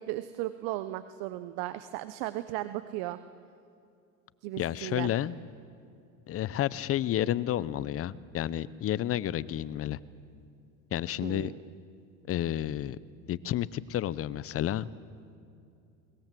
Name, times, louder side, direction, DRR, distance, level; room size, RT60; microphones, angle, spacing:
voice 1, 0.0-3.2 4.4-5.1 11.2-11.6, right 15 dB, 60° right, 13 dB, 1.0 m, -36 dB
voice 2, 4.6-5.4 6.3-10.0 10.9-11.5 12.3-13.0 13.3-14.9, left 12 dB, 35° left, 19 dB, 0.7 m, -31 dB
21.5 x 20.0 x 7.7 m, 2.6 s
supercardioid pair, 105°, 43 cm